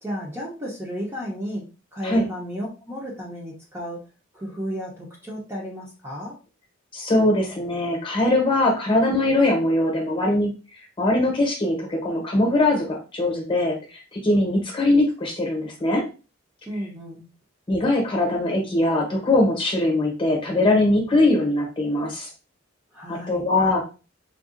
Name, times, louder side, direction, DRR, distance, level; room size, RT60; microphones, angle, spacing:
voice 1, 0.0-1.7 1.9-4.0 4.3-6.4 16.7-17.3 22.9-23.4, equal, 10° right, -3 dB, 0.6 m, -33 dB
voice 2, 6.9-10.5 11.0-13.8 14.1-16.0 17.7-22.3 23.1-23.8, left 2 dB, 25° left, 0 dB, 0.9 m, -21 dB
3.6 x 2.3 x 2.5 m, 0.32 s
head